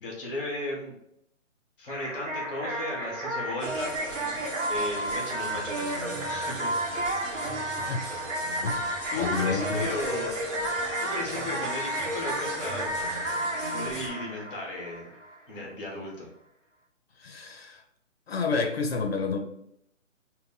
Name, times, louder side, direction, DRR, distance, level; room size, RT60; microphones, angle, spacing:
voice 1, 0.0-1.0 1.8-4.0 4.7-6.7 7.8-8.2 9.1-10.4 11.0-12.9 13.7-15.1 15.5-16.3, left 2 dB, 5° left, 0.5 m, -35 dB
sound 1, 1.9-15.3, right 1 dB, 65° right, 1.1 m, -32 dB
sound 2, 3.6-14.1, right 2 dB, 45° right, 1.2 m, -41 dB
voice 2, 9.2-9.9 17.2-17.8 18.3-19.4, left 4 dB, 50° left, 0.5 m, -29 dB
4.2 x 2.1 x 3.5 m
hypercardioid pair, 155°, 39 cm